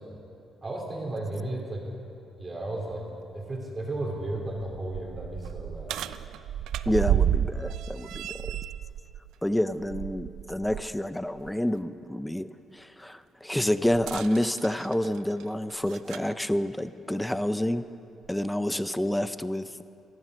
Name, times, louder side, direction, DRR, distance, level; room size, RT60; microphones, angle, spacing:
voice 1, 0.6-1.9 2.4-3.0 3.3-6.0, right 1 dB, 30° right, 0 dB, 3.2 m, -34 dB
sound 1, 2.9-3.0 3.5-3.6 4.2-10.9 11.3-11.5 13.9-16.3 17.3-17.4 18.2-18.3, right 10 dB, 85° right, 0.4 m, -32 dB
voice 2, 6.9-8.6 9.4-12.5 12.7-17.8 18.3-19.8, left 1 dB, 5° left, 13 dB, 0.5 m, -28 dB
14.5 x 12.0 x 6.2 m, 2.7 s
cardioid pair, 90°, 0 cm